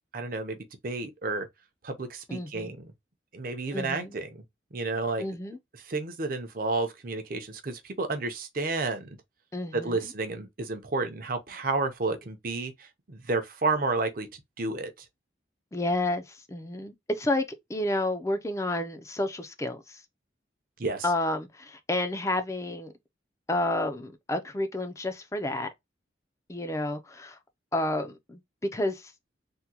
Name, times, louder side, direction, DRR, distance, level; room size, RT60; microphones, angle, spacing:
voice 1, 0.1-0.6 0.8-1.5 1.8-2.9 3.3-4.4 4.7-5.3 5.8-9.2 9.7-15.1 20.8-21.1, right 3 dB, 50° right, 0.6 m, -31 dB
voice 2, 2.3-2.7 3.7-4.2 5.2-5.6 9.5-10.1 15.7-17.4 17.7-20.0 21.0-22.9 23.5-25.7 26.5-27.4 27.7-28.4 28.7-29.1, left 1 dB, 15° left, 0.4 m, -30 dB
3.6 x 2.2 x 2.7 m
head